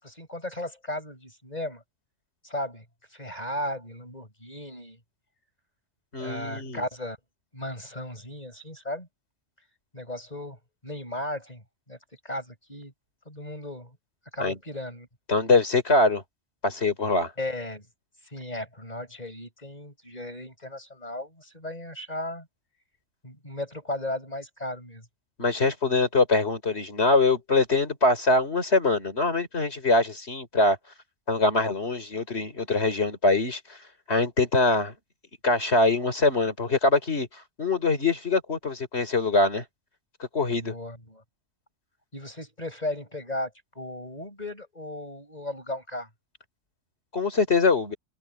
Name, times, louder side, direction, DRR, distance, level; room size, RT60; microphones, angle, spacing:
voice 1, 0.0-1.8 2.4-2.8 3.1-5.0 6.2-7.2 7.5-9.1 9.9-12.0 12.2-12.9 13.3-14.0 14.3-15.1 17.4-17.9 18.2-22.5 23.2-25.1 40.6-41.2 42.1-43.5 43.8-46.1, left 1 dB, 35° left, 7.3 m, -36 dB
voice 2, 6.1-6.8 14.4-14.6 15.3-16.2 16.6-17.3 25.4-30.8 31.3-33.6 34.1-34.9 35.4-37.3 37.6-39.6 40.3-40.7 47.1-47.9, left 3 dB, 60° left, 3.8 m, -23 dB
open air
omnidirectional pair, 1.2 m